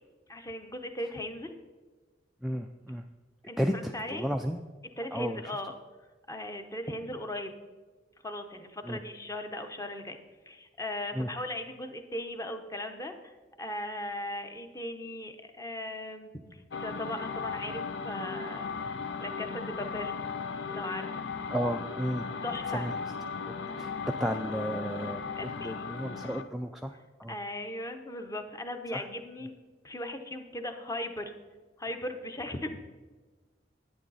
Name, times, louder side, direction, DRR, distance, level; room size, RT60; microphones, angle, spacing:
voice 1, 0.3-1.5 3.5-4.3 5.0-5.7 6.3-7.5 8.2-10.2 10.5-18.7 19.2-20.1 20.7-21.1 22.4-22.9 25.3-25.9 27.3-29.5 29.8-31.3 31.8-32.7, left 1 dB, 15° left, 6 dB, 0.8 m, -38 dB
voice 2, 2.4-3.0 3.6-4.6 5.1-5.5 8.8-9.0 11.1-11.3 21.5-22.3 22.7-22.9 23.7-27.3 28.9-29.1, equal, ahead, 3 dB, 0.3 m, -33 dB
sound 1, 16.7-26.5, left 5 dB, 70° left, 0.6 m, -37 dB
10.5 x 9.1 x 4.1 m, 1.3 s
head